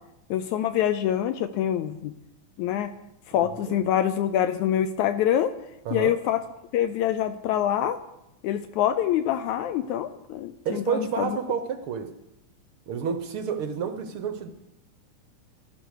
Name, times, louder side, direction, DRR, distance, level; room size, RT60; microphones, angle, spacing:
voice 1, 0.3-2.1 2.6-2.9 3.3-5.5 5.9-6.4 6.7-8.0 8.4-11.4, left 10 dB, 80° left, 11 dB, 1.9 m, -25 dB
voice 2, 3.3-3.8 5.8-6.1 10.6-12.1 12.9-14.5, right 6 dB, 70° right, 8 dB, 1.3 m, -30 dB
13.0 x 11.5 x 6.4 m, 0.87 s
omnidirectional pair, 3.6 m